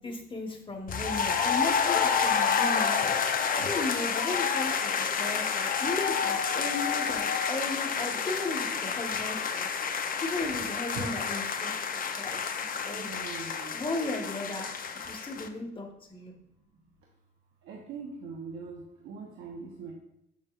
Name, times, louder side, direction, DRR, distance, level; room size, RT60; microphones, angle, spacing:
voice 1, 0.0-9.7 10.0-13.0 13.7-14.7 15.0-16.3, left 2 dB, 25° left, 2 dB, 1.3 m, -36 dB
sound 1, 0.9-15.5, left 6 dB, 45° left, 0.6 m, -29 dB
voice 2, 12.9-13.7 17.7-19.9, right 4 dB, 90° right, -2 dB, 1.0 m, -42 dB
7.2 x 6.5 x 2.5 m, 0.80 s
cardioid pair, 90°, 20 cm